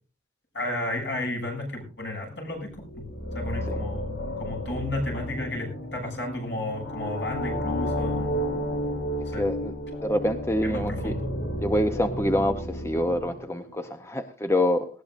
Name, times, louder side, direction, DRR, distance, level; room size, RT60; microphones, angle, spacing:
voice 1, 0.5-3.1 3.3-8.4 9.2-9.4 10.6-11.3, left 1 dB, 65° left, 1 dB, 7.4 m, -33 dB
sound 1, 2.7-13.8, equal, 80° left, 3.1 m, -32 dB
voice 2, 9.4-9.7 10.0-11.2 11.6-14.9, left 1 dB, 15° left, 7 dB, 0.7 m, -26 dB
19.0 x 16.5 x 2.5 m, 0.38 s
head